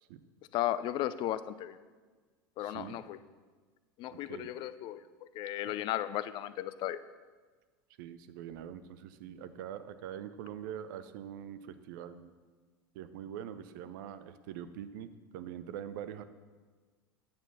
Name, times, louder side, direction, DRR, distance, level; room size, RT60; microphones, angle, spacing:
voice 1, 0.5-1.8 2.6-3.2 4.0-5.0 5.3-7.0, left 13 dB, 40° left, 15 dB, 0.4 m, -35 dB
voice 2, 2.6-3.0 4.1-4.5 5.7-5.8 8.0-12.3 12.9-16.2, right 9 dB, 55° right, 12 dB, 0.6 m, -44 dB
8.7 x 6.8 x 5.8 m, 1.4 s
figure-of-eight pair, 80°, 12 cm